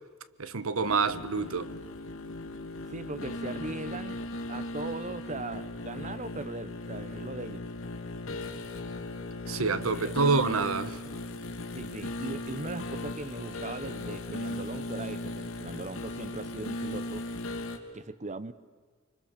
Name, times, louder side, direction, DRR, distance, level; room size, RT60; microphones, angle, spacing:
voice 1, 0.4-1.7 9.5-11.0, right 4 dB, 90° right, 1.1 m, -27 dB
sound 1, 0.7-17.8, left 2 dB, 85° left, 2.9 m, -37 dB
voice 2, 2.9-7.7 9.9-10.3 11.8-17.2 17.9-18.5, right 3 dB, 35° right, 0.8 m, -39 dB
29.5 x 24.5 x 6.8 m
head